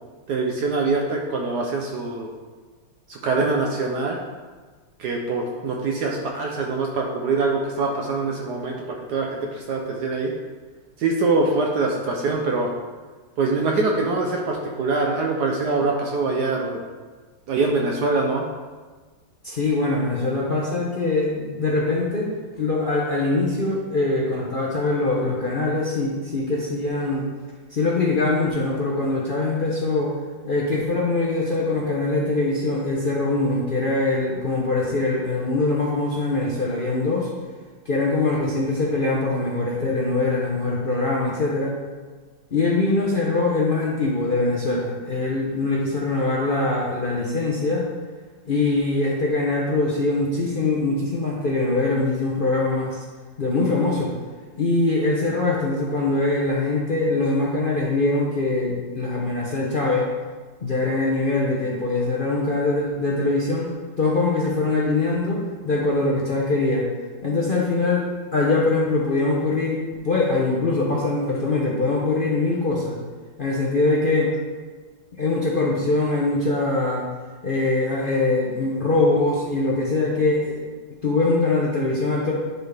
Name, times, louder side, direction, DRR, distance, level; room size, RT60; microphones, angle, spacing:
voice 1, 0.3-2.3 3.1-4.2 5.0-10.3 11.0-12.7 13.4-16.8 17.5-18.5, right 3 dB, 65° right, 0 dB, 1.1 m, -24 dB
voice 2, 19.4-22.3 22.6-27.3 27.7-30.2 30.4-37.3 37.9-41.8 42.5-47.8 48.5-53.0 53.4-54.1 54.5-60.1 60.6-63.7 64.0-66.9 67.2-73.0 73.4-74.3 75.2-77.1 77.4-80.6 81.0-82.3, left 2 dB, 55° left, -4 dB, 0.6 m, -23 dB
10.0 x 4.1 x 3.4 m, 1.4 s
omnidirectional pair, 2.1 m